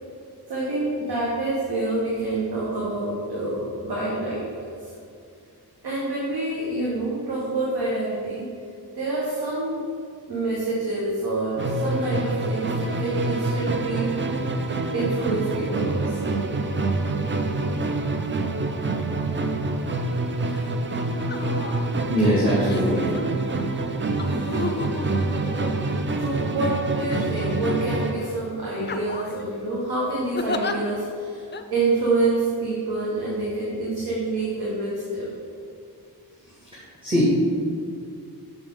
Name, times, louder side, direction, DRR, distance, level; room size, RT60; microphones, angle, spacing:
voice 1, 0.5-4.9 5.8-8.5 8.9-9.9 10.3-14.2 14.9-16.4 26.2-35.3, right 2 dB, 85° right, -6 dB, 1.2 m, -27 dB
Musical instrument, 11.6-28.2, right 2 dB, 30° right, 0.5 m, -26 dB
sound 1, 20.5-20.7 21.2-21.9 22.7-23.2 24.2-26.2 27.0-27.8 28.2-28.4 28.8-29.4 30.3-30.7 31.5-31.6, left 4 dB, 30° left, 0.4 m, -33 dB
voice 2, 22.1-23.2 37.0-37.3, equal, 15° right, -8 dB, 1.5 m, -21 dB
6.2 x 5.3 x 3.5 m, 2.4 s
wide cardioid pair, 75°, 38 cm